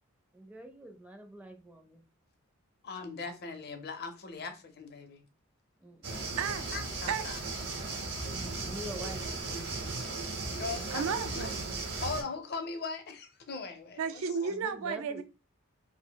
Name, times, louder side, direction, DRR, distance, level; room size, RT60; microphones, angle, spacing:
voice 1, 0.3-2.0 5.8-6.4 8.5-9.4 14.5-15.2, right 1 dB, 5° right, 0.4 m, -45 dB
voice 2, 2.8-5.2 6.7-7.4 8.5-8.6 10.5-11.0 11.3-11.5 12.0-14.5, left 4 dB, 50° left, 0.5 m, -39 dB
sound 1, 6.0-12.2, right 3 dB, 50° right, 0.8 m, -36 dB
voice 3, 6.4-6.7 7.1-7.2 10.9-12.0 14.0-15.2, right 6 dB, 80° right, 0.4 m, -33 dB
2.5 x 2.0 x 3.8 m
head